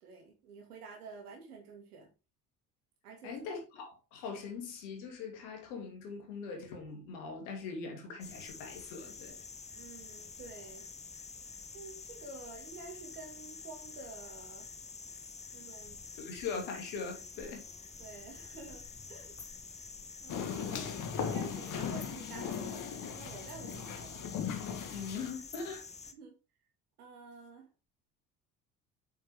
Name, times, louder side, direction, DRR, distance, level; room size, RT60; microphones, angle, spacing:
voice 1, 0.0-2.1 3.0-3.3 9.7-10.9 11.7-14.7 15.1-16.0 17.4-17.5 18.0-18.8 19.1-19.4 20.2-20.8 21.3-24.2 26.1-26.3 27.0-27.7, right 4 dB, 75° right, 2.3 m, -50 dB
voice 2, 3.2-9.4 16.2-17.7 20.7-21.2 24.9-25.9, left 5 dB, 65° left, 2.6 m, -41 dB
sound 1, 8.2-26.1, left 4 dB, 15° left, 0.8 m, -48 dB
sound 2, 20.3-25.3, left 7 dB, 45° left, 1.4 m, -38 dB
7.9 x 5.9 x 3.5 m
figure-of-eight pair, 55°, 46 cm